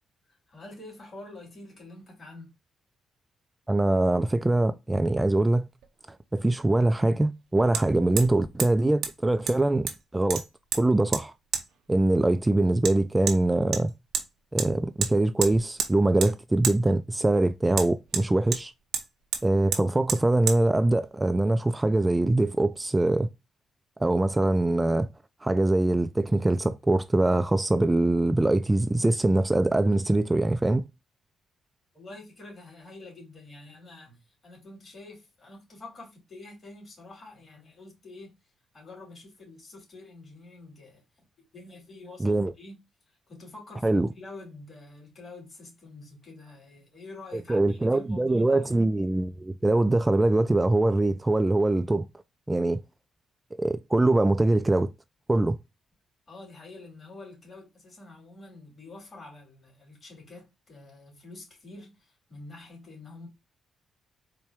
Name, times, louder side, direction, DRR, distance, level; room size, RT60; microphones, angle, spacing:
voice 1, 0.5-2.5 31.9-38.3 38.7-41.0 41.5-42.8 43.3-48.7 56.3-63.3, left 2 dB, 45° left, 2.6 m, -47 dB
voice 2, 3.7-5.7 6.3-10.4 10.7-11.3 11.9-13.9 14.5-18.7 19.4-23.3 24.0-25.1 25.4-30.9 42.2-42.5 43.8-44.1 47.5-52.1 52.5-52.8 53.6-54.9 55.3-55.6, right 2 dB, 20° right, 0.3 m, -23 dB
Hammer, 5.8-5.9 7.7-7.8 8.2-8.3 8.6-8.7 9.0-9.1 9.5-10.0 10.3-10.8 11.1-11.2 11.5-11.6 12.8-12.9 13.3-13.4 13.7-14.3 14.6-14.7 15.0-15.1 15.4-15.9 16.2-16.3 16.6-16.8 17.7-18.6 18.9-19.1 19.3-19.4 19.7-19.8 20.1-20.2 20.5-20.6, right 7 dB, 75° right, 0.6 m, -29 dB
4.4 x 2.2 x 3.5 m
supercardioid pair, 55°, 0 cm